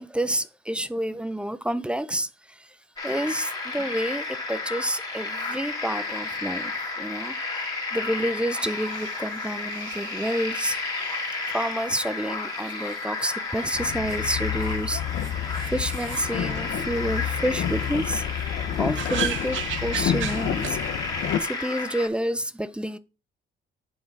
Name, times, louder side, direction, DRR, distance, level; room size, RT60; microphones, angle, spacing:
voice 1, 0.0-2.8 3.0-10.8 11.5-15.0 15.7-18.2 18.8-20.8 21.4-23.0, right 1 dB, 5° right, 0.5 m, -29 dB
sound 1, 3.0-22.1, left 3 dB, 20° left, 2.5 m, -32 dB
sound 2, 8.6-21.9, right 10 dB, 75° right, 0.8 m, -40 dB
Boat Water vehicle, 13.7-21.4, left 10 dB, 70° left, 0.7 m, -29 dB
8.9 x 3.6 x 4.8 m
cardioid pair, 90°, 20 cm